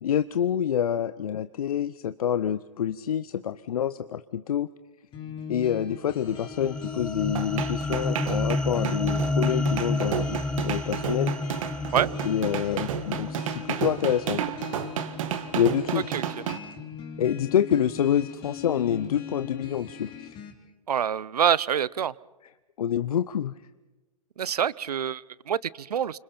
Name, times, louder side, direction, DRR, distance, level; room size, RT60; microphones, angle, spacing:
voice 1, 0.0-4.7 5.5-10.4 10.6-11.3 12.2-14.6 15.5-16.1 17.2-20.3 22.8-23.5, left 9 dB, 70° left, 13 dB, 0.7 m, -27 dB
sound 1, 5.1-20.5, left 7 dB, 25° left, 3.2 m, -40 dB
sound 2, 6.2-14.6, left 2 dB, 5° left, 0.6 m, -30 dB
sound 3, 7.3-16.6, right 10 dB, 55° right, 1.7 m, -32 dB
voice 2, 20.9-22.1 24.4-26.2, right 8 dB, 80° right, 23 dB, 0.7 m, -26 dB
30.0 x 26.5 x 4.4 m, 1.1 s
hypercardioid pair, 120°, 20 cm